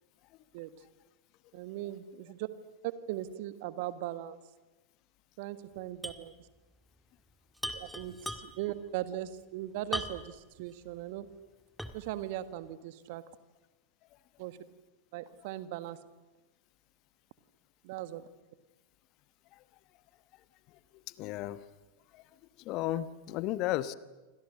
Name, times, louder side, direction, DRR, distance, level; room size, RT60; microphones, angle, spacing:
voice 1, 1.5-2.5 2.8-4.4 5.4-6.3 7.7-11.3 11.9-13.2 14.4-14.6 15.1-16.0 17.8-18.3, right 14 dB, 50° right, 12 dB, 1.6 m, -39 dB
sound 1, 6.0-6.3 6.6-6.7 7.6-8.7 9.9-10.4 10.9-11.0 11.8-12.2, equal, ahead, 2.0 m, -38 dB
voice 2, 20.9-21.6 22.1-22.2 22.6-23.9, left 14 dB, 40° left, 15 dB, 1.1 m, -34 dB
28.5 x 25.5 x 6.6 m, 1.1 s
figure-of-eight pair, 85°, 0 cm